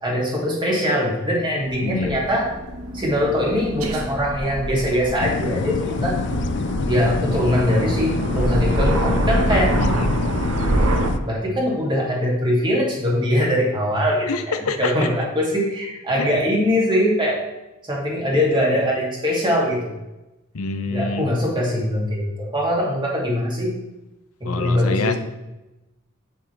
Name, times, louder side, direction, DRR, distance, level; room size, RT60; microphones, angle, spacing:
voice 1, 0.0-2.5 2.9-6.2 6.9-9.8 11.2-17.4 17.9-19.9 20.9-23.7 24.4-25.2, equal, 25° right, -3 dB, 2.5 m, -22 dB
Aircraft, 1.6-11.1, right 1 dB, 85° right, 1.3 m, -25 dB
voice 2, 1.8-2.2 9.1-10.1 14.3-14.9 16.2-16.3 20.5-21.3 24.4-25.2, left 3 dB, 85° left, 8 dB, 0.8 m, -26 dB
sound 1, 5.2-11.2, left 4 dB, 55° left, 0.4 m, -27 dB
8.2 x 7.8 x 3.3 m, 0.99 s
head